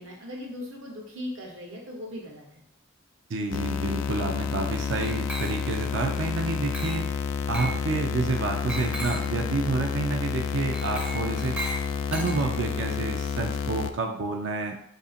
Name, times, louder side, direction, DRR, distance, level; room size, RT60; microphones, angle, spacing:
voice 1, 0.0-2.5, left 1 dB, 85° right, -1 dB, 1.0 m, -38 dB
voice 2, 3.3-7.0 7.5-11.6 12.1-14.8, right 3 dB, 65° right, 3 dB, 0.4 m, -29 dB
sound 1, 3.5-13.9, left 6 dB, 80° left, 0.3 m, -30 dB
Glass, 5.0-5.9 6.7-7.1 7.5-7.8 8.7-9.3 10.7-12.8, right 1 dB, 5° right, 0.5 m, -37 dB
2.8 x 2.6 x 4.1 m, 0.75 s
head